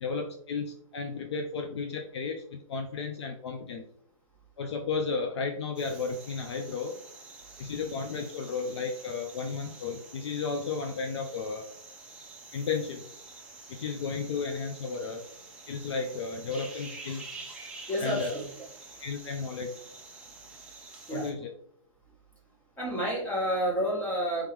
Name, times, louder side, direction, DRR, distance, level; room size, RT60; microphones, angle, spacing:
voice 1, 0.0-3.8 4.6-6.9 7.6-11.6 12.5-13.0 13.7-15.2 15.7-17.2 18.0-18.3 19.0-19.7 21.1-21.5, left 4 dB, 55° left, 5 dB, 0.6 m, -33 dB
sound 1, 5.7-21.3, right 3 dB, 5° right, 0.6 m, -48 dB
voice 2, 17.9-18.4 21.1-21.3 22.8-24.5, equal, 10° left, -4 dB, 1.5 m, -29 dB
4.7 x 3.7 x 3.0 m, 0.66 s
hypercardioid pair, 145°, 18 cm